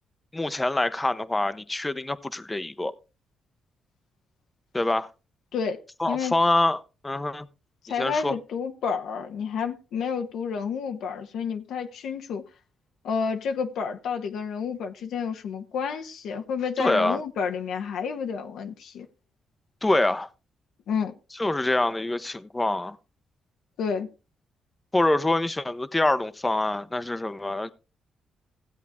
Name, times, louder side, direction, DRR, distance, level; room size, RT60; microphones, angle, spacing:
voice 1, 0.3-2.9 4.7-5.1 6.0-7.5 8.0-8.4 16.8-17.2 19.8-20.3 21.4-23.0 24.9-27.7, left 2 dB, 15° left, 0.8 m, -25 dB
voice 2, 7.8-12.4 13.0-19.1 20.9-21.1 23.8-24.1, left 6 dB, 80° left, 1.0 m, -30 dB
16.0 x 8.2 x 3.5 m
cardioid pair, 75°, 0 cm